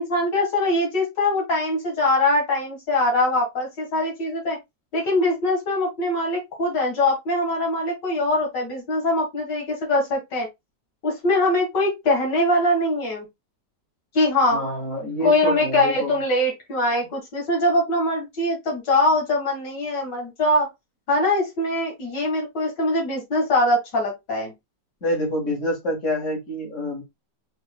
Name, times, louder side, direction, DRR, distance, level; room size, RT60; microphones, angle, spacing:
voice 1, 0.0-4.6 4.9-10.5 11.0-13.3 14.1-14.6 15.2-20.7 21.1-24.5, left 1 dB, 80° left, 2.4 m, -22 dB
voice 2, 14.5-16.2 25.0-27.0, left 1 dB, 45° left, 2.3 m, -27 dB
5.3 x 3.8 x 2.3 m
omnidirectional pair, 1.9 m